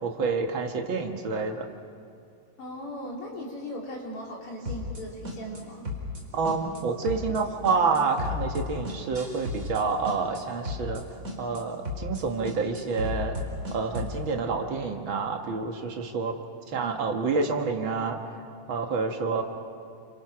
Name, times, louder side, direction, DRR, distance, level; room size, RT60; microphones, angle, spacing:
voice 1, 0.0-1.6 6.3-11.0 11.4-13.4 13.7-16.4 16.7-18.3 18.7-19.4, right 4 dB, 45° right, 3 dB, 1.7 m, -28 dB
voice 2, 2.6-5.8, equal, 40° left, -3 dB, 4.9 m, -38 dB
sound 1, 4.7-5.0 5.3-5.6 5.9-6.2 6.5-6.8 7.1-7.4 7.7-9.8 10.1-10.4 10.7-11.0 11.3-11.6 11.9-12.2 12.5-14.2, left 3 dB, 25° right, 4.1 m, -33 dB
30.0 x 26.5 x 6.1 m, 2.5 s
omnidirectional pair, 4.0 m